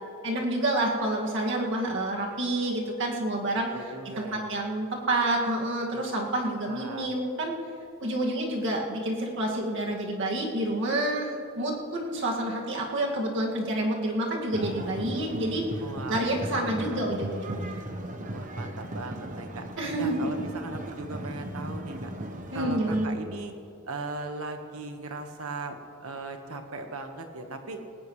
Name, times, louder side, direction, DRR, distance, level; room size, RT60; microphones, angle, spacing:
voice 1, 0.2-3.8 4.2-7.5 8.0-15.6 16.1-17.8 19.8-20.7 22.5-23.2, right 1 dB, 60° right, -1 dB, 2.1 m, -28 dB
voice 2, 3.7-4.5 5.9-6.0 6.7-7.1 15.8-17.1 18.3-19.6 20.0-22.1 22.5-23.5 23.8-27.8, right 2 dB, 75° right, 5 dB, 1.4 m, -38 dB
sound 1, 14.5-23.1, right 1 dB, 35° right, 1.0 m, -37 dB
19.5 x 17.5 x 3.2 m, 2.5 s
head